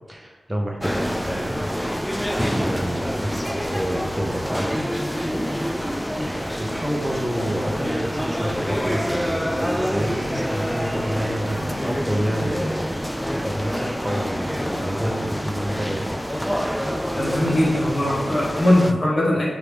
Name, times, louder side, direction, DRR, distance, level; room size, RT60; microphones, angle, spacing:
voice 1, 0.1-1.7 2.2-4.9 6.2-13.0 13.3-16.1, equal, 15° right, 0 dB, 0.8 m, -29 dB
sound 1, 0.8-18.9, equal, 5° left, 0.3 m, -27 dB
voice 2, 17.2-19.5, left 1 dB, 45° left, -4 dB, 1.4 m, -20 dB
4.9 x 3.0 x 3.3 m, 1.1 s
cardioid pair, 60°, 0 cm